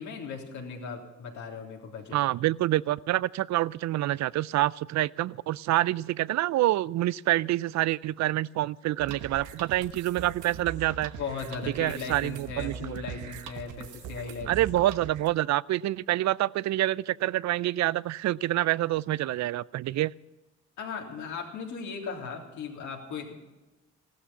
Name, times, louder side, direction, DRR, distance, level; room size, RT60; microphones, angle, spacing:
voice 1, 0.0-2.2 11.2-14.7 20.8-23.3, left 5 dB, 80° left, 0 dB, 3.4 m, -37 dB
voice 2, 2.1-11.1 11.8-13.0 14.5-20.1, right 15 dB, 70° right, 22 dB, 0.5 m, -27 dB
sound 1, 9.0-15.3, right 7 dB, 90° right, 1.1 m, -42 dB
16.0 x 13.0 x 5.6 m, 1.1 s
supercardioid pair, 70°, 29 cm